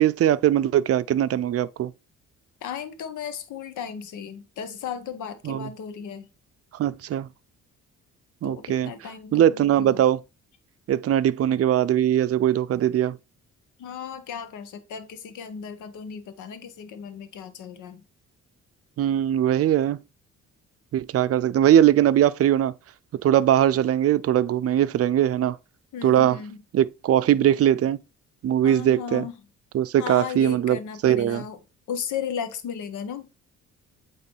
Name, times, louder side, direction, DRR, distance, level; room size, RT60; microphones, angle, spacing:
voice 1, 0.0-1.9 5.4-5.7 6.7-7.3 8.4-8.9 9.3-10.2 10.9-13.2 19.0-20.0 20.9-22.7 23.2-25.6 26.0-26.4 26.7-28.0 28.4-29.3 29.7-31.4, right 11 dB, 50° right, 0.5 m, -21 dB
voice 2, 2.6-6.3 8.4-10.0 13.8-18.0 25.9-26.6 28.6-29.3 30.0-31.6 31.9-33.3, left 7 dB, 80° left, 1.2 m, -35 dB
8.6 x 3.2 x 4.6 m
cardioid pair, 90°, 30 cm